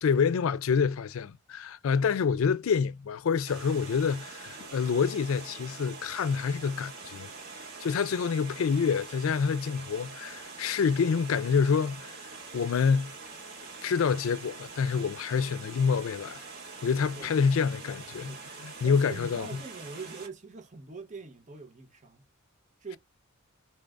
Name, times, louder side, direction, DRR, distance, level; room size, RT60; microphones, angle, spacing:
voice 1, 0.0-7.3 7.8-12.1 12.5-13.1 13.8-16.4 16.8-18.3 18.6-19.5, left 6 dB, 80° left, 0.4 m, -27 dB
Water, 3.5-20.3, right 4 dB, 50° right, 1.9 m, -44 dB
voice 2, 17.1-17.5 18.1-18.5 18.8-22.3 22.8-23.0, right 4 dB, 35° right, 0.8 m, -43 dB
4.4 x 2.5 x 3.4 m
head